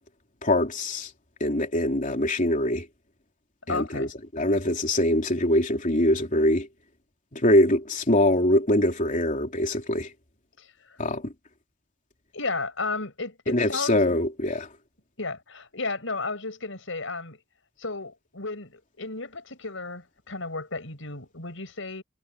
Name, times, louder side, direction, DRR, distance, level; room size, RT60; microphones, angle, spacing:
voice 1, 0.4-1.1 1.4-2.9 3.7-6.7 7.3-10.1 11.0-11.3 13.5-14.7, left 1 dB, 40° left, 3.3 m, -23 dB
voice 2, 3.7-4.1 10.6-11.0 12.3-14.0 15.2-17.4 17.8-22.0, left 3 dB, 70° left, 7.5 m, -33 dB
head